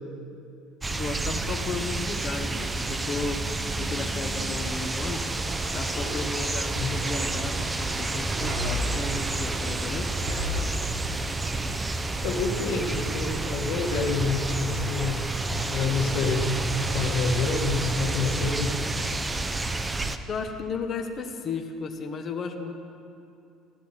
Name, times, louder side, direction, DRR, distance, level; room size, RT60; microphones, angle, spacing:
sound 1, 0.8-20.2, right 2 dB, 15° right, 0.5 m, -29 dB
voice 1, 0.9-3.4 3.8-5.2 5.7-10.1 20.3-22.8, left 4 dB, 35° left, 5 dB, 1.0 m, -34 dB
Wind, 3.8-16.1 16.4-16.7, equal, 45° right, 3.7 m, -39 dB
voice 2, 12.2-15.2 15.7-18.7, left 4 dB, 75° left, 2 dB, 1.6 m, -28 dB
15.0 x 11.5 x 4.3 m, 2.6 s
cardioid pair, 140°, 0 cm